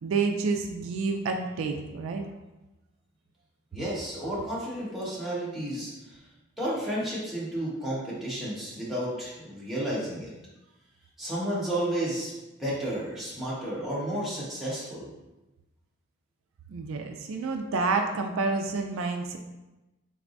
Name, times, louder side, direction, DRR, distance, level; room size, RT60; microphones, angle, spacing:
voice 1, 0.0-2.2 16.7-19.4, right 4 dB, 70° right, 5 dB, 0.3 m, -29 dB
voice 2, 3.7-6.2 6.6-10.3 11.2-12.3 12.6-15.1, right 1 dB, ahead, -9 dB, 1.1 m, -32 dB
4.0 x 3.4 x 2.5 m, 1.0 s
head